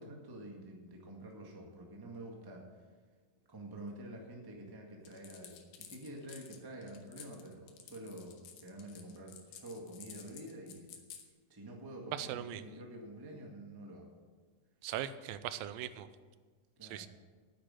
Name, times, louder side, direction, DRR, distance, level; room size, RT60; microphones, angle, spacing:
voice 1, 0.0-2.7 3.5-10.9 11.5-14.1 16.7-17.1, right 1 dB, 15° right, 0 dB, 0.8 m, -48 dB
sound 1, 5.1-11.2, left 8 dB, 75° left, 2.7 m, -53 dB
voice 2, 12.1-12.6 14.8-16.1 16.9-17.1, right 11 dB, 90° right, 13 dB, 2.3 m, -39 dB
9.7 x 9.4 x 7.6 m, 1.5 s
omnidirectional pair, 4.0 m